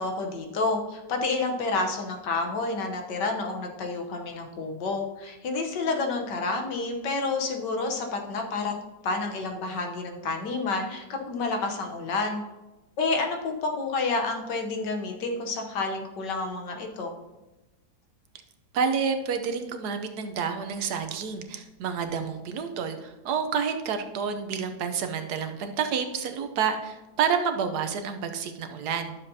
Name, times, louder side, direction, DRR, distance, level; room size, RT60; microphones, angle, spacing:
voice 1, 0.0-8.7 9.0-12.4 13.0-17.1, left 3 dB, 85° left, 3 dB, 1.6 m, -29 dB
voice 2, 18.7-29.2, right 6 dB, 70° right, 7 dB, 1.3 m, -29 dB
11.5 x 6.9 x 2.8 m, 1.1 s
omnidirectional pair, 1.9 m